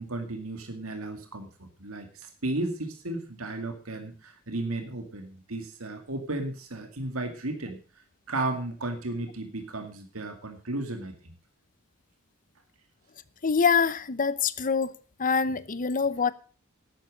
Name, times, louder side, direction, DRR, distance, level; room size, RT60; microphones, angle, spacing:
voice 1, 0.0-7.8 8.3-11.3, right 2 dB, 75° right, 2.2 m, -34 dB
voice 2, 13.4-14.9 15.2-16.3, left 5 dB, 40° left, 0.8 m, -25 dB
11.5 x 8.9 x 6.4 m
head